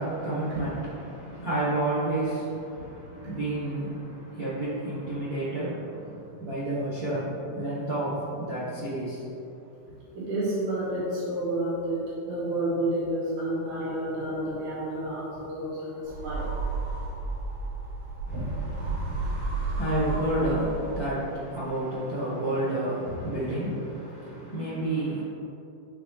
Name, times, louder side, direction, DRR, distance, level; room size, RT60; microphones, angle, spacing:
voice 1, 0.0-9.3 18.2-25.2, right 1 dB, 40° right, -10 dB, 1.4 m, -30 dB
voice 2, 10.1-16.5 18.3-18.4 18.8-18.9, right 1 dB, 80° right, -9 dB, 3.3 m, -30 dB
sound 1, 16.0-21.4, right 3 dB, 55° right, 1.8 m, -32 dB
10.5 x 3.7 x 3.7 m, 2.8 s
omnidirectional pair, 3.6 m